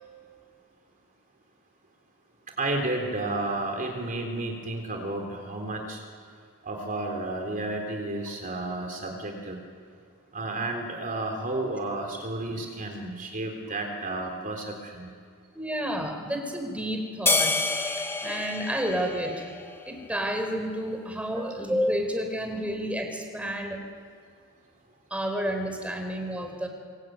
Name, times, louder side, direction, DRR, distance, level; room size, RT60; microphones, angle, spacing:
voice 1, 2.6-6.0 6.6-9.6 10.3-15.1 21.4-21.7, right 2 dB, 40° right, 2 dB, 3.6 m, -32 dB
voice 2, 15.5-17.5 18.0-19.4 19.9-23.8 25.1-26.7, equal, 5° right, 3 dB, 4.5 m, -30 dB
sound 1, 17.3-19.9, left 3 dB, 10° left, 1.6 m, -28 dB
25.0 x 23.0 x 9.4 m, 2.2 s
head